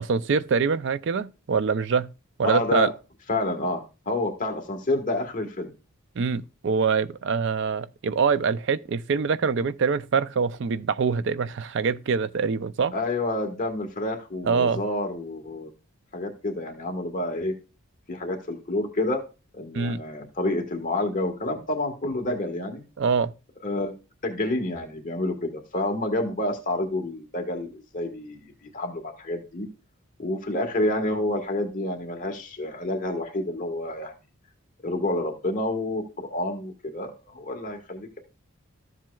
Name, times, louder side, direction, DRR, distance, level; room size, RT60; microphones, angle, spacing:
voice 1, 0.0-2.1 2.4-2.9 6.2-12.9 14.4-14.8 19.7-20.0 23.0-23.3, right 5 dB, 55° right, 0.4 m, -24 dB
voice 2, 2.4-2.9 3.3-5.7 12.9-15.7 16.1-17.5 18.1-19.2 19.5-22.8 23.6-23.9 24.2-29.6 30.2-34.1 34.8-38.2, left 2 dB, 35° left, 1.5 m, -29 dB
13.5 x 7.5 x 2.3 m
head